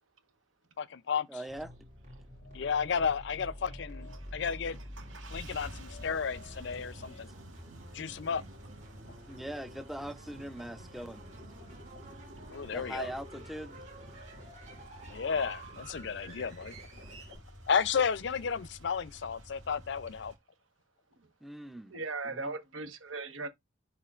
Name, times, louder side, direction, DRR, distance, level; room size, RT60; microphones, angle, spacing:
voice 1, 0.8-1.3 2.5-4.8 5.3-7.3 7.9-8.4 12.5-13.1 15.1-16.7 17.7-20.3, left 6 dB, 60° left, 0.4 m, -32 dB
voice 2, 1.3-1.7 9.3-11.3 12.7-13.8 21.4-22.0 22.3-22.5, right 1 dB, ahead, 0.4 m, -41 dB
sound 1, 1.5-17.4, right 1 dB, 35° right, 3.5 m, -49 dB
sound 2, 3.9-20.4, equal, 75° right, 2.2 m, -51 dB
voice 3, 4.8-5.1 7.0-7.2 8.3-8.5 14.1-14.2 16.4-16.7 21.1-21.3 21.9-23.5, right 3 dB, 90° right, 1.2 m, -40 dB
11.0 x 3.7 x 2.4 m
head